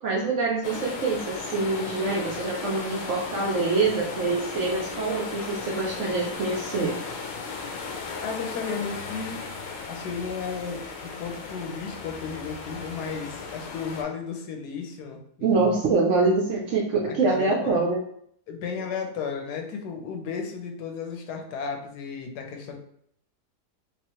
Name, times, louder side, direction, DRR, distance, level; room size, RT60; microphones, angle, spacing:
voice 1, 0.0-7.0 15.4-18.0, right 3 dB, 65° right, -1 dB, 0.7 m, -25 dB
sound 1, 0.6-14.0, left 4 dB, 65° left, 0.9 m, -36 dB
voice 2, 8.2-9.5 9.9-15.8 16.9-17.9 18.5-22.8, left 5 dB, 85° left, 3 dB, 1.3 m, -34 dB
3.6 x 3.0 x 3.0 m, 0.67 s
omnidirectional pair, 1.7 m